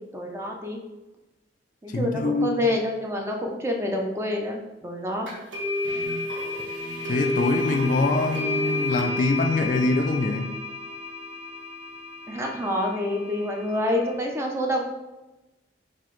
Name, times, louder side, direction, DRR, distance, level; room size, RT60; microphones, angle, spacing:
voice 1, 0.1-0.8 1.8-5.3 12.3-14.8, left 1 dB, 15° right, 1 dB, 0.5 m, -27 dB
voice 2, 1.9-2.6 7.1-10.5, left 3 dB, 45° left, 5 dB, 0.3 m, -24 dB
sound 1, 5.3-14.1, left 2 dB, 75° right, 1.4 m, -31 dB
sound 2, 5.8-11.3, right 2 dB, 45° right, 0.9 m, -43 dB
5.5 x 2.5 x 3.1 m, 1.0 s
head